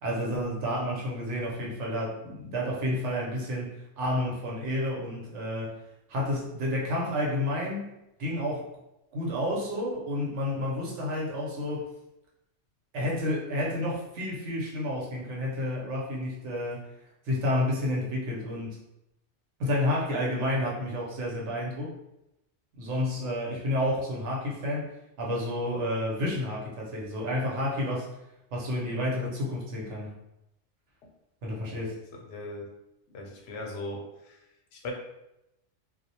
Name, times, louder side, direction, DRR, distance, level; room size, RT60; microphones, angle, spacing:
voice 1, 0.0-5.7 6.1-7.9 8.2-8.7 9.1-11.9 12.9-16.8 17.3-18.8 19.6-21.9 22.8-24.9 25.2-28.1 28.5-30.1 31.4-31.9, left 1 dB, 90° right, -2 dB, 1.0 m, -30 dB
voice 2, 32.3-32.7 33.1-34.4 34.7-34.9, left 2 dB, 90° left, 1 dB, 0.9 m, -38 dB
2.3 x 2.0 x 2.7 m, 0.88 s
omnidirectional pair, 1.2 m